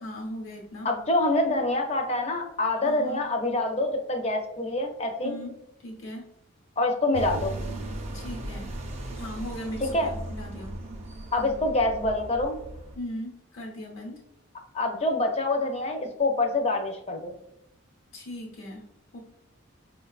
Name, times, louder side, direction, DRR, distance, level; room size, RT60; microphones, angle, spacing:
voice 1, 0.0-0.9 2.8-3.2 5.2-6.3 8.1-8.7 9.1-11.0 12.9-14.2 18.1-18.9 19.1-19.2, left 1 dB, 80° left, -2 dB, 0.9 m, -38 dB
voice 2, 0.8-5.4 6.8-7.6 9.8-10.1 11.3-12.6 14.7-17.3, left 2 dB, 30° left, 4 dB, 0.5 m, -26 dB
sound 1, 7.1-13.0, right 1 dB, 30° right, 0.4 m, -37 dB
5.1 x 2.2 x 2.3 m, 0.87 s
head